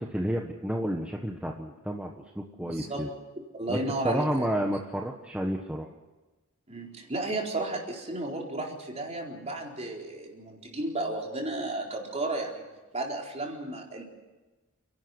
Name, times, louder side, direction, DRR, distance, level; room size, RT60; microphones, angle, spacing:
voice 1, 0.0-3.1 3.7-3.8 4.0-5.9, equal, 5° right, 1 dB, 1.3 m, -31 dB
voice 2, 2.6-3.0 3.5-4.5 6.7-12.6 12.9-14.0, right 2 dB, 30° right, 0 dB, 4.2 m, -33 dB
29.5 x 12.0 x 9.7 m, 1.2 s
head